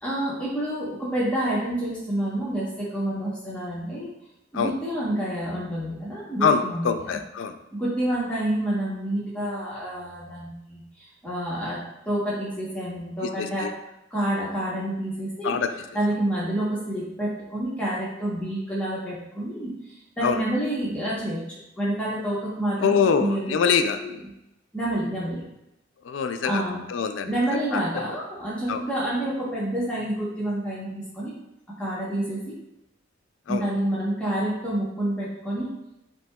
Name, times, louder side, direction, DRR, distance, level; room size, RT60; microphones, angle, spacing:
voice 1, 0.0-4.1 4.5-7.2 7.7-11.8 12.0-13.7 14.1-15.6 15.9-23.6 24.0-24.2 24.7-25.4 26.4-26.8 27.2-31.3 31.8-32.5 33.5-35.7, right 1 dB, 5° left, -8 dB, 1.0 m, -28 dB
voice 2, 6.4-7.5 13.4-13.7 15.4-15.7 20.2-20.4 22.8-24.0 26.1-26.6 26.9-27.3 27.7-27.8 28.7-28.8 33.5-33.6, left 6 dB, 70° left, 8 dB, 0.4 m, -24 dB
7.5 x 2.8 x 2.3 m, 0.87 s
head